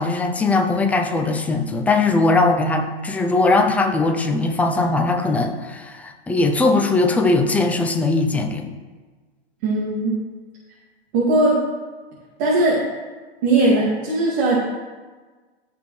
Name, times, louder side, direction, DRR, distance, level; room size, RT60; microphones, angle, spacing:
voice 1, 0.0-8.7, left 3 dB, 5° left, 2 dB, 0.5 m, -20 dB
voice 2, 9.6-10.2 11.1-11.6 12.4-12.8 13.4-14.6, right 2 dB, 45° right, -5 dB, 2.3 m, -18 dB
14.5 x 5.3 x 3.2 m, 1.4 s
hypercardioid pair, 145°, 32 cm